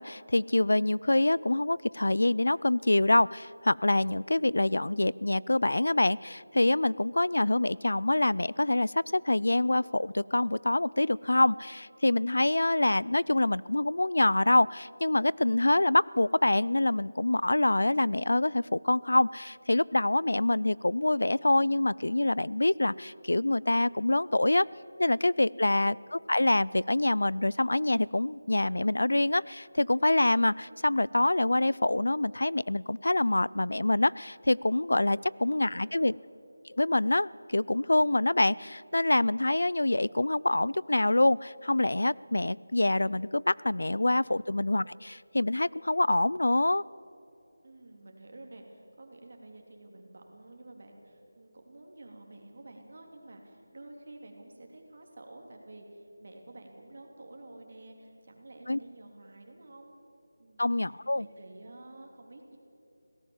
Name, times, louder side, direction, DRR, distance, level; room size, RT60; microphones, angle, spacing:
voice 1, 0.0-24.7 25.0-36.1 36.7-46.8 58.7-58.8 60.6-61.3, left 2 dB, 85° left, 22 dB, 0.4 m, -26 dB
voice 2, 25.5-25.8 35.7-36.2 47.6-59.9 60.4-62.6, right 2 dB, 45° right, 2 dB, 3.0 m, -50 dB
21.5 x 17.0 x 7.2 m, 2.9 s
figure-of-eight pair, 175°, 0 cm